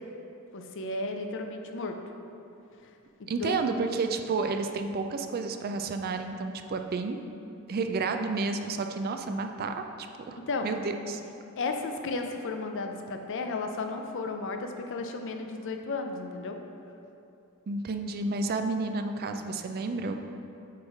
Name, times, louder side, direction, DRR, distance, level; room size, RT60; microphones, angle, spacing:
voice 1, 0.5-2.0 2.8-2.9 3.2-3.6 10.5-10.7 11.6-16.6, left 3 dB, 60° left, 4 dB, 0.5 m, -34 dB
voice 2, 3.3-7.2 7.7-9.8 10.3-11.2 17.7-20.1, right 3 dB, 45° right, 6 dB, 0.4 m, -31 dB
8.3 x 3.1 x 4.9 m, 2.7 s
head